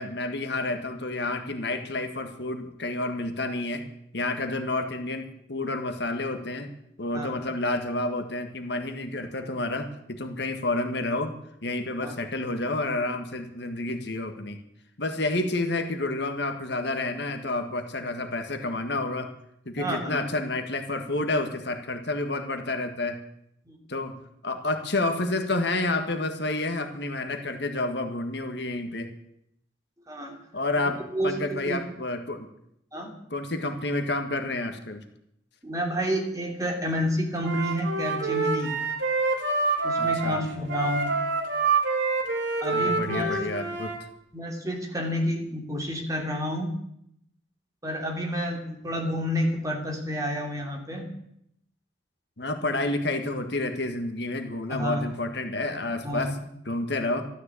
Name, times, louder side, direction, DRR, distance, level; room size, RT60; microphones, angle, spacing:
voice 1, 0.0-3.8 4.1-6.7 7.0-11.3 11.6-14.6 15.0-19.3 19.7-23.2 23.9-24.1 24.4-29.1 30.5-32.5 33.3-35.0 40.0-40.4 42.7-43.9 52.4-56.4 56.7-57.3, left 2 dB, 55° left, 5 dB, 1.7 m, -29 dB
voice 2, 19.8-20.2 23.7-23.8 30.1-30.4 31.1-31.8 32.9-33.1 35.6-38.7 39.8-41.1 42.6-43.4 44.3-46.7 47.8-51.1 54.7-55.1 56.0-56.3, equal, 15° right, 1 dB, 3.0 m, -29 dB
Wind instrument woodwind instrument, 37.4-44.0, right 3 dB, 75° right, 3.1 m, -27 dB
13.0 x 13.0 x 8.4 m, 0.75 s
head